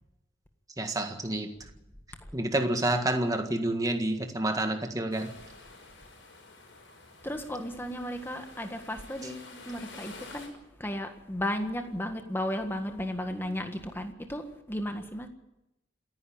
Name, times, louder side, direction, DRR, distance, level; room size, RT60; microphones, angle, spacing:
voice 1, 0.8-1.5 2.3-5.3, right 1 dB, 20° right, 1.7 m, -28 dB
sound 1, 5.1-10.5, left 3 dB, 70° left, 5.9 m, -50 dB
voice 2, 7.2-15.3, left 1 dB, 10° left, 1.7 m, -34 dB
28.0 x 10.5 x 8.8 m
head